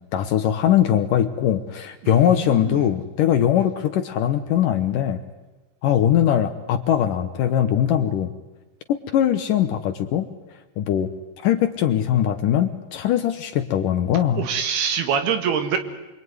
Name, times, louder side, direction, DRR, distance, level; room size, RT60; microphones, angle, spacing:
voice 1, 0.1-5.2 5.8-8.3 8.9-10.3 10.8-11.1 11.4-14.4, left 10 dB, 70° left, 8 dB, 2.3 m, -21 dB
voice 2, 2.0-2.9 3.5-3.6 14.3-15.8, right 7 dB, 75° right, 7 dB, 3.7 m, -25 dB
27.0 x 22.5 x 9.6 m, 1.1 s
omnidirectional pair, 4.7 m